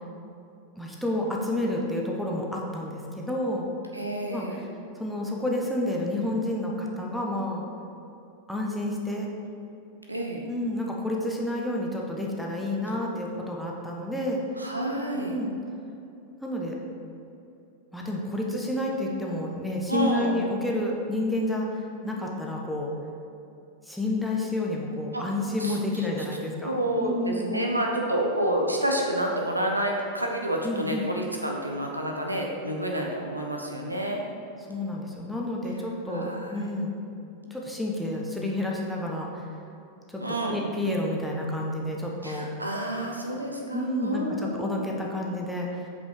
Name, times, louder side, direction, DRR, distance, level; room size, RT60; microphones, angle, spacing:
voice 1, 0.8-3.7 4.3-4.6 5.0-7.6 8.5-9.3 10.5-14.4 15.2-15.5 16.4-16.8 17.9-21.7 22.0-22.9 23.9-27.7 30.6-31.1 34.7-36.9 37.5-39.4 40.1-40.2 40.5-42.5 43.7-45.9, left 1 dB, ahead, -2 dB, 1.2 m, -30 dB
voice 2, 3.9-4.6 10.1-10.4 14.6-15.4 19.9-20.4 25.1-25.2 25.6-26.1 26.6-34.2 36.1-36.7 40.2-40.6 42.2-44.9, right 1 dB, 85° right, 0 dB, 1.0 m, -29 dB
8.1 x 5.5 x 4.8 m, 2.8 s
figure-of-eight pair, 90°, 0 cm